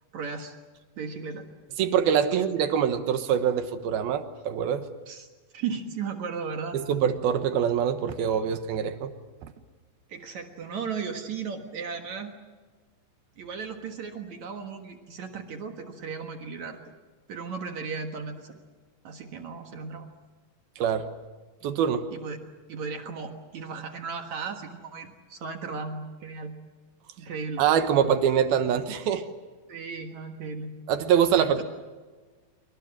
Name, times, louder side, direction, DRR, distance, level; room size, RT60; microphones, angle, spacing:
voice 1, 0.1-0.5 1.0-1.5 5.1-5.3 5.5-6.8 10.1-12.3 13.4-16.8 17.3-18.6 19.0-20.1 22.1-22.4 22.7-26.5 27.2-27.7 29.7-30.7 31.3-31.6, right 5 dB, 55° right, 5 dB, 2.6 m, -36 dB
voice 2, 1.8-4.9 6.7-9.1 20.8-21.1 21.6-22.1 27.6-29.3 30.9-31.6, right 8 dB, 80° right, 9 dB, 3.1 m, -24 dB
27.0 x 25.0 x 7.6 m, 1.3 s
omnidirectional pair, 4.3 m